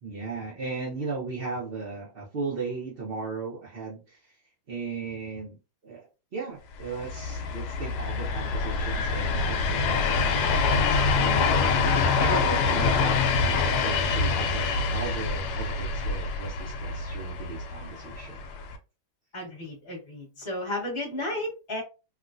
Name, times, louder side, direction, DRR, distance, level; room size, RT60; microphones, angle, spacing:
voice 1, 0.0-4.4 4.7-6.1 6.3-18.4, right 4 dB, 55° right, -5 dB, 0.6 m, -36 dB
sound 1, 6.8-18.8, left 4 dB, 80° left, 1.3 m, -26 dB
voice 2, 19.3-21.8, left 1 dB, 20° left, -2 dB, 1.1 m, -33 dB
3.4 x 2.4 x 2.5 m, 0.30 s
omnidirectional pair, 2.1 m